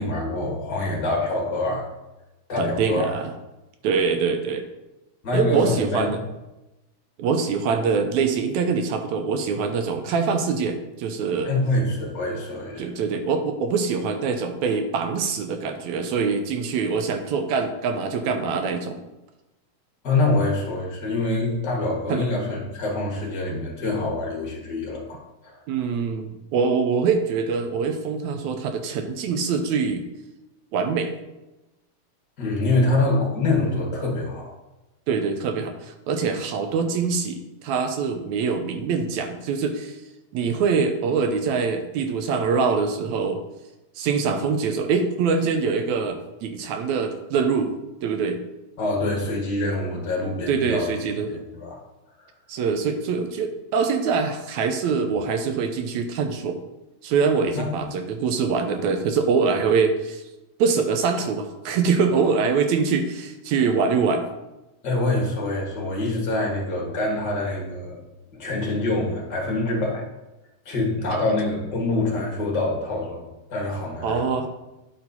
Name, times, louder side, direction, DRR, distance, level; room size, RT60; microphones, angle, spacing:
voice 1, 0.0-1.8 2.5-3.1 5.2-6.1 11.4-12.9 20.0-25.6 32.4-34.5 48.8-51.0 51.6-51.8 57.5-57.7 64.8-68.0 68.3-70.1 70.7-74.3, left 2 dB, 40° left, -2 dB, 1.9 m, -25 dB
voice 2, 2.6-3.3 3.8-4.6 5.3-6.2 7.2-11.5 12.8-19.0 22.1-22.3 25.7-30.0 30.7-31.1 35.1-40.0 40.3-43.4 44.0-47.7 48.0-48.4 50.5-51.4 52.5-56.6 57.0-60.2 60.6-64.3 71.1-71.2 74.0-74.5, right 5 dB, 75° right, 6 dB, 1.8 m, -24 dB
10.5 x 4.3 x 4.1 m, 1.0 s
omnidirectional pair, 3.5 m